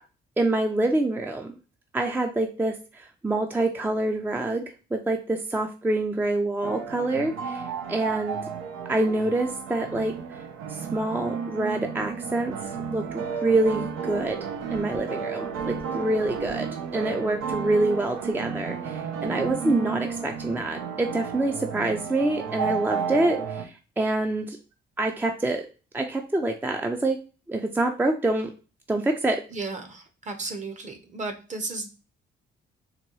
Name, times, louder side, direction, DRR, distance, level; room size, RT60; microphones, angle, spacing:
voice 1, 0.4-1.6 1.9-4.6 4.9-8.4 8.9-10.4 10.7-12.6 12.9-14.4 14.7-24.6 25.0-25.7 25.9-27.2 27.5-28.5 28.9-29.4, right 2 dB, 10° right, 4 dB, 0.4 m, -26 dB
sound 1, 6.6-23.6, right 6 dB, 90° right, 0.6 m, -32 dB
voice 2, 29.5-31.9, right 3 dB, 35° right, 7 dB, 0.8 m, -34 dB
4.0 x 2.2 x 3.0 m, 0.34 s
cardioid pair, 90°, 20 cm